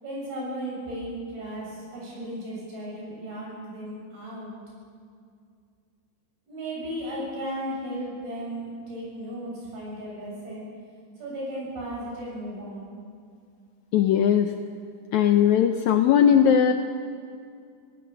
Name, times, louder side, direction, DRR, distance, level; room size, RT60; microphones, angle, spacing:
voice 1, 0.0-4.5 6.5-10.7 11.2-12.9, right 1 dB, 85° right, -4 dB, 9.2 m, -35 dB
voice 2, 13.9-14.5 15.1-16.7, left 9 dB, 80° left, 6 dB, 1.7 m, -19 dB
21.5 x 18.5 x 6.9 m, 2.3 s
omnidirectional pair, 4.2 m